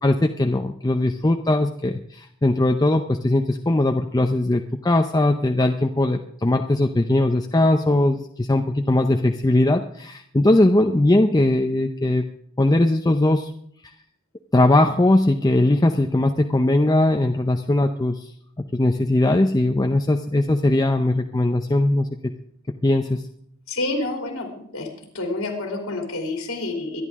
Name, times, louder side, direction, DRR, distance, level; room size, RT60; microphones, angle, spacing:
voice 1, 0.0-12.2 12.6-13.5 14.5-18.3 18.7-22.1 22.8-23.2, left 1 dB, 20° left, 4 dB, 0.6 m, -20 dB
voice 2, 23.7-24.9 25.1-27.0, left 2 dB, 85° left, 1 dB, 3.1 m, -28 dB
24.5 x 10.5 x 3.6 m, 0.67 s
head